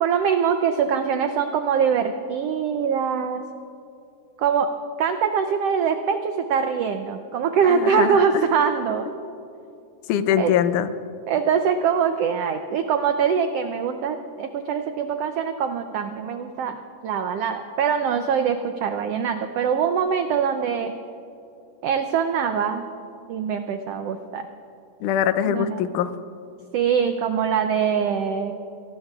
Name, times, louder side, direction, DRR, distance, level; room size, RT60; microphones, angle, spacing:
voice 1, 0.0-3.4 4.4-4.7 5.0-9.1 10.4-10.5 11.3-20.9 21.8-22.9 23.3-24.5 25.5-25.8 26.7-28.5, right 7 dB, 85° right, 7 dB, 1.3 m, -23 dB
voice 2, 7.7-8.5 10.1-10.9 25.0-26.1, left 9 dB, 85° left, 12 dB, 2.2 m, -23 dB
24.5 x 18.5 x 2.4 m, 2.7 s
omnidirectional pair, 3.5 m